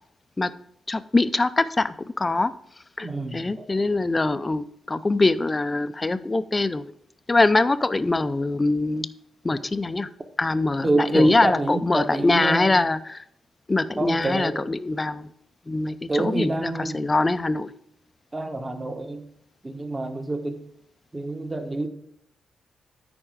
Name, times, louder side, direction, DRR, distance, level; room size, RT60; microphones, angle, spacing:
voice 1, 0.9-2.5 3.0-6.8 7.3-9.1 9.4-10.1 10.4-13.2 13.7-15.3 15.7-17.7, left 2 dB, 30° left, 13 dB, 0.5 m, -23 dB
voice 2, 3.0-3.7 10.8-12.8 14.0-14.6 16.1-17.1 18.3-19.2 19.6-20.6 21.1-21.9, right 2 dB, 25° right, 6 dB, 1.3 m, -27 dB
10.0 x 4.3 x 4.9 m, 0.72 s
supercardioid pair, 50°, 0 cm